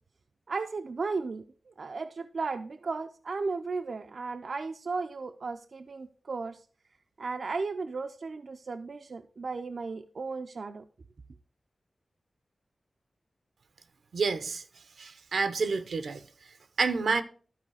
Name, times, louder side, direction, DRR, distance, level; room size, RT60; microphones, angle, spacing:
voice 1, 0.5-6.6 7.2-10.8, right 4 dB, 60° right, 0.5 m, -35 dB
voice 2, 14.1-14.6 15.0-16.2 16.8-17.2, right 4 dB, 90° right, 0.8 m, -28 dB
12.5 x 4.7 x 4.8 m
wide cardioid pair, 130°, 0 cm